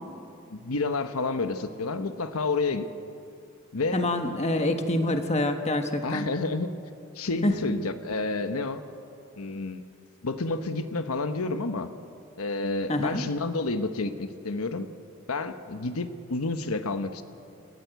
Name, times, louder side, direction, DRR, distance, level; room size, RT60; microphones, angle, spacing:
voice 1, 0.5-2.9 3.7-4.0 6.0-6.7 7.1-8.8 9.4-9.8 10.2-11.9 12.4-14.9 15.3-17.2, left 3 dB, 85° left, 9 dB, 1.0 m, -29 dB
voice 2, 3.9-6.3 7.4-7.6 12.9-13.2, left 1 dB, 30° left, 6 dB, 1.5 m, -26 dB
29.0 x 14.0 x 8.1 m, 2.5 s
head